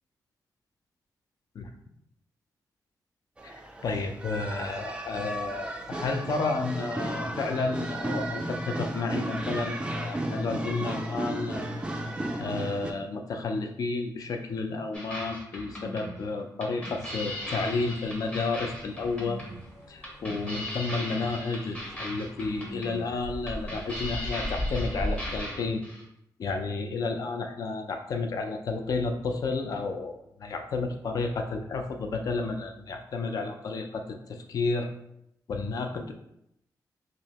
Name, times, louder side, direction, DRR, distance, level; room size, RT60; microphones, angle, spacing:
sound 1, 3.4-12.9, right 1 dB, 15° right, 0.3 m, -34 dB
voice 1, 3.8-11.7 12.4-19.4 19.9-25.8 26.4-34.9 35.5-36.1, left 3 dB, 55° left, 5 dB, 0.4 m, -31 dB
sound 2, 14.9-26.0, equal, 15° left, 0.8 m, -38 dB
sound 3, 17.0-25.4, left 1 dB, 35° left, 1.1 m, -39 dB
5.1 x 2.0 x 2.8 m, 0.78 s
wide cardioid pair, 150°, 7 cm